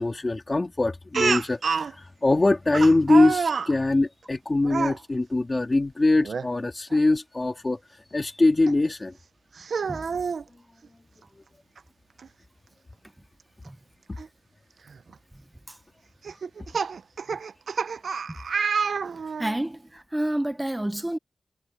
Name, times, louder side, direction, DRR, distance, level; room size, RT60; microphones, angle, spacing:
voice 1, 0.0-9.1, left 2 dB, 25° left, 2.6 m, -23 dB
Speech, 1.1-1.9 2.7-3.7 4.6-5.0 6.2-6.5 6.9-7.0 8.7-8.8 9.6-10.4 11.8-11.9 12.2-12.3 14.2-14.3 14.9-15.1 16.2-19.6, right 5 dB, 70° right, 0.5 m, -28 dB
voice 2, 19.4-21.2, right 1 dB, 10° right, 0.5 m, -29 dB
wide cardioid pair, 120°, 0 cm